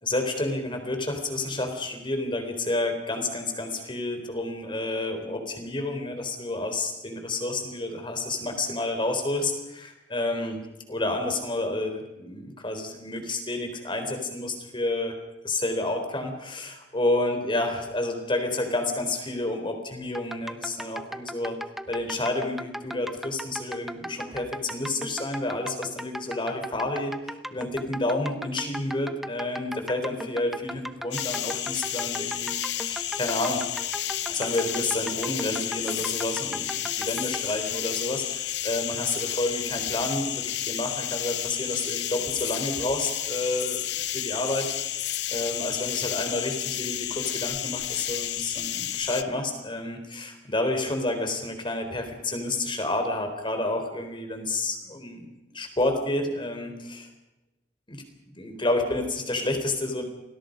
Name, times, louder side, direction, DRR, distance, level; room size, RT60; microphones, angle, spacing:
voice 1, 0.0-10.6 10.9-15.2 15.4-21.6 21.9-33.6 34.3-55.3 55.5-57.1 57.9-58.0 58.4-60.0, left 2 dB, 30° left, 6 dB, 4.0 m, -30 dB
sound 1, 20.1-37.5, equal, ahead, 1.0 m, -37 dB
sound 2, 31.1-49.2, left 12 dB, 70° left, 0.8 m, -31 dB
28.5 x 20.5 x 5.2 m, 1.0 s
head